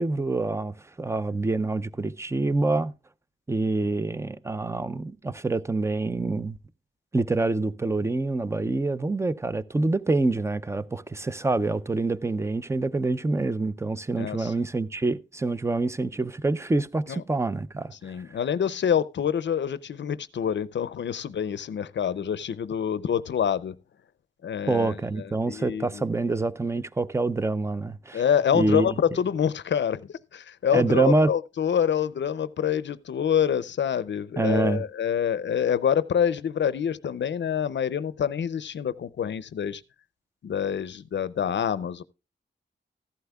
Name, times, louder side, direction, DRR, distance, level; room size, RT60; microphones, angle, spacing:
voice 1, 0.0-2.9 3.5-6.6 7.1-18.2 24.7-28.2 28.5-28.9 30.7-31.3 34.4-34.8, right 2 dB, 15° right, 0.5 m, -26 dB
voice 2, 14.2-14.5 17.1-17.2 18.0-23.8 24.4-26.0 28.1-39.8 40.4-42.0, left 8 dB, 65° left, 0.5 m, -26 dB
14.5 x 11.5 x 2.3 m
wide cardioid pair, 145°, 20 cm